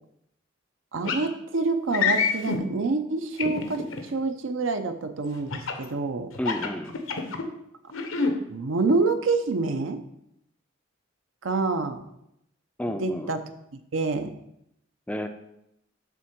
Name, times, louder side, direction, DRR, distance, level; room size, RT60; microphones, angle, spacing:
voice 1, 0.9-6.3 8.5-10.0 11.4-12.0 13.0-13.4 13.9-14.3, right 3 dB, 70° right, 8 dB, 0.7 m, -27 dB
sound 1, 1.1-1.3 1.9-2.6 3.4-4.0 5.5-5.8 6.3-7.4 7.9-8.3, left 5 dB, 80° left, 0.9 m, -26 dB
voice 2, 6.4-6.9 12.8-13.3 15.1-15.3, left 1 dB, 5° left, 7 dB, 0.4 m, -30 dB
7.1 x 3.7 x 6.0 m, 0.80 s
head